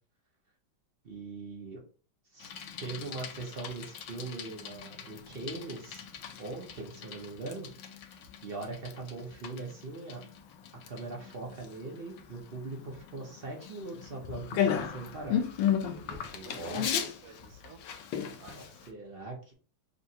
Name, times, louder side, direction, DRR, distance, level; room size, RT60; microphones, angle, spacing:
voice 1, 1.0-1.8 2.3-2.5 2.8-6.1 6.4-7.7 8.0-8.1 8.4-10.2 10.9-15.4 16.3-16.9 18.5-19.5, right 3 dB, 45° right, -1 dB, 0.7 m, -41 dB
Bicycle, 2.4-18.9, left 9 dB, 75° left, 1.3 m, -36 dB
voice 2, 15.9-17.8 18.3-18.7, right 4 dB, 65° right, 6 dB, 1.1 m, -50 dB
6.7 x 2.2 x 2.7 m, 0.38 s
omnidirectional pair, 2.2 m